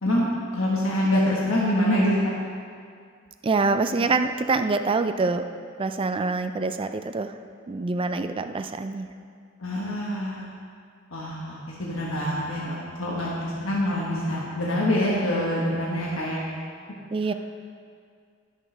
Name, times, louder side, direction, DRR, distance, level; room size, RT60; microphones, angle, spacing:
voice 1, 0.0-2.2 9.6-10.5 11.1-16.4, left 1 dB, 80° left, -5 dB, 1.3 m, -25 dB
voice 2, 3.4-5.4 5.8-7.3 7.7-9.1 17.1-17.3, right 3 dB, 25° right, 8 dB, 0.4 m, -25 dB
15.5 x 6.5 x 3.3 m, 2.2 s
head